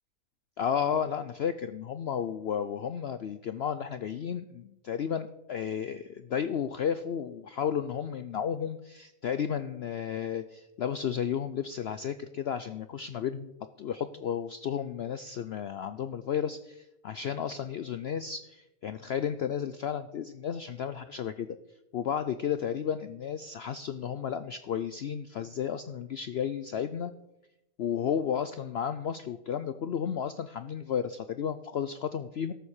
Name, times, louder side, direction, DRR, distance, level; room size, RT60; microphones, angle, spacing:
voice 1, 0.6-13.5 13.8-21.5 21.9-27.1 27.8-32.5, left 8 dB, 70° left, 12 dB, 0.6 m, -33 dB
13.0 x 7.2 x 6.5 m, 0.88 s
omnidirectional pair, 1.6 m